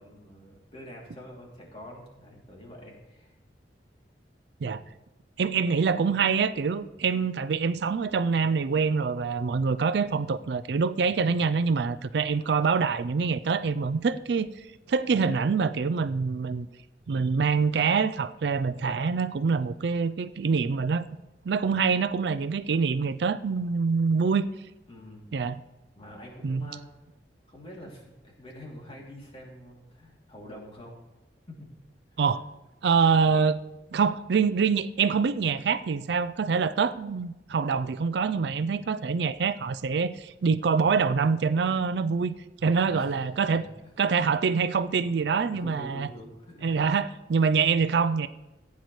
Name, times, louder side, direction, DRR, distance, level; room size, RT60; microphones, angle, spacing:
voice 1, 0.0-3.3 4.6-4.9 24.9-25.3 25.9-26.8 27.5-31.0 31.5-31.6 32.1-32.4 42.7-44.1 45.5-47.0, equal, 35° left, 2.8 m, -46 dB
voice 2, 5.4-14.5 14.9-16.7 17.1-21.0 21.5-24.5 25.3-25.6 26.4-26.7 32.2-32.4 32.8-33.6 33.9-42.3 42.6-43.6 44.0-46.1 46.6-48.3, right 5 dB, 70° right, 0.4 m, -25 dB
15.5 x 9.5 x 3.2 m
head